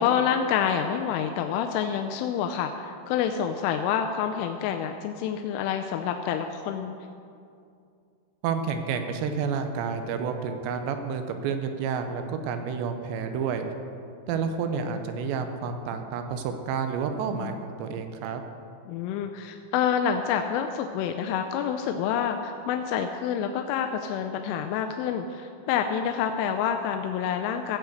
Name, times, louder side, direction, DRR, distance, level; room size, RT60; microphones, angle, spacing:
voice 1, 0.0-6.9 17.4-17.5 18.9-27.8, left 8 dB, 85° left, 5 dB, 3.0 m, -27 dB
voice 2, 8.4-13.7 14.3-18.4, right 6 dB, 80° right, 7 dB, 2.7 m, -30 dB
14.5 x 4.9 x 7.8 m, 2.4 s
omnidirectional pair, 5.5 m